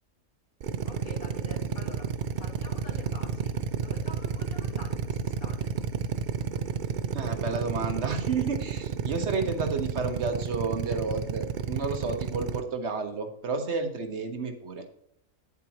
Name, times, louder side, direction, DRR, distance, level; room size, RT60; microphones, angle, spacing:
Drill, 0.6-12.6, right 7 dB, 90° right, 0.4 m, -31 dB
voice 1, 0.8-2.1 2.4-5.7, left 1 dB, 80° left, 2 dB, 2.2 m, -47 dB
voice 2, 7.1-14.8, right 4 dB, 55° right, 6 dB, 1.3 m, -31 dB
8.8 x 8.1 x 2.9 m, 0.73 s
omnidirectional pair, 1.5 m